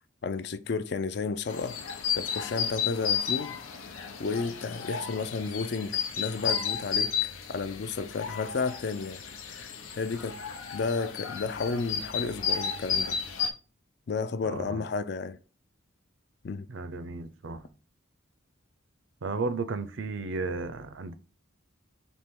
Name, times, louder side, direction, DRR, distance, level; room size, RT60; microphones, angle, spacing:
voice 1, 0.2-1.8 2.1-3.6 3.9-7.1 7.5-9.2 9.5-10.4 10.7-13.2 14.1-15.4 16.4-16.7, left 4 dB, 55° left, 0.4 m, -32 dB
sound 1, 1.5-13.5, left 7 dB, 90° left, 0.8 m, -33 dB
voice 2, 14.4-14.8 16.7-17.7 19.2-21.1, right 3 dB, 65° right, 0.5 m, -34 dB
4.3 x 2.9 x 3.6 m
head